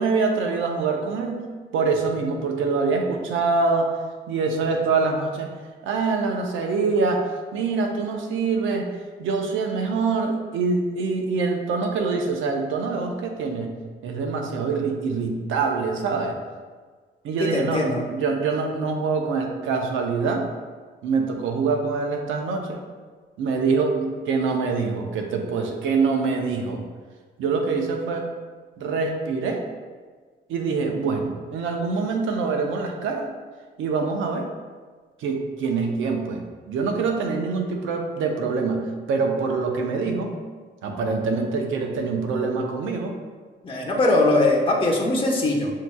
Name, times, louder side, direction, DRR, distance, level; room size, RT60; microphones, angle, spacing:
voice 1, 0.0-1.4 1.7-3.9 4.3-5.5 5.8-8.9 9.2-13.7 14.0-16.4 17.2-20.5 21.0-22.8 23.4-26.8 27.4-28.3 28.8-29.6 30.5-33.3 33.8-34.5 35.2-36.4 36.7-40.4 40.8-43.1, right 4 dB, 85° right, 3 dB, 0.7 m, -25 dB
voice 2, 17.4-18.0 43.6-45.7, left 2 dB, 25° left, -2 dB, 1.0 m, -21 dB
7.3 x 2.7 x 2.3 m, 1.5 s
cardioid pair, 90°, 20 cm